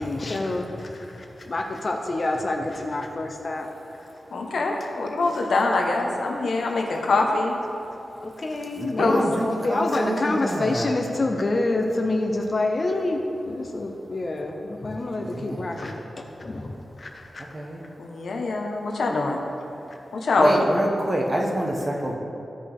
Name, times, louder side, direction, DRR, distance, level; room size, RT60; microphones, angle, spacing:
voice 1, 0.0-3.7 4.0-4.1 5.3-5.5 6.7-7.0 8.2-17.4 19.9-20.0, left 2 dB, 35° left, 3 dB, 0.6 m, -28 dB
voice 2, 4.3-7.5 9.0-9.2 18.0-19.4 20.1-20.5, left 3 dB, 80° left, 1 dB, 1.0 m, -24 dB
voice 3, 8.8-10.9 15.2-15.8 17.5-17.8 20.4-22.2, right 1 dB, 30° right, -1 dB, 1.1 m, -26 dB
14.5 x 5.2 x 3.5 m, 2.8 s
wide cardioid pair, 160°, 0 cm